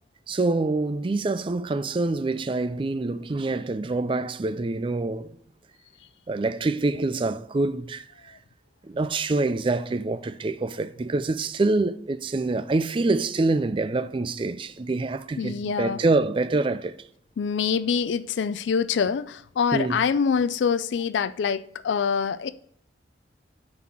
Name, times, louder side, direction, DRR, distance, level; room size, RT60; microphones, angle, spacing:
voice 1, 0.3-5.3 6.3-8.3 8.8-17.0 19.7-20.0, right 3 dB, 30° right, 0.4 m, -26 dB
voice 2, 15.4-16.0 17.4-22.5, left 6 dB, 80° left, 0.4 m, -25 dB
9.3 x 3.9 x 6.1 m
head